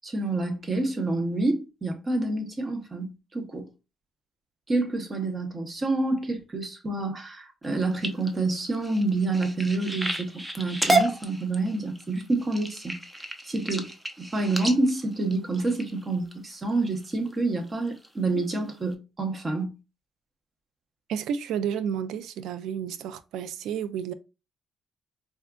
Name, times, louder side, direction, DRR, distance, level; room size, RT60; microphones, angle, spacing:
voice 1, 0.0-3.7 4.7-13.0 13.4-13.9 14.2-19.7, right 2 dB, 35° right, 0.9 m, -28 dB
sound 1, 7.6-16.3 16.9-17.3 17.7-18.1 18.5-18.6 18.9-19.0, right 1 dB, 10° right, 0.6 m, -31 dB
voice 2, 21.1-24.1, right 8 dB, 85° right, 0.3 m, -31 dB
4.2 x 2.5 x 2.3 m
cardioid pair, 90°, 0 cm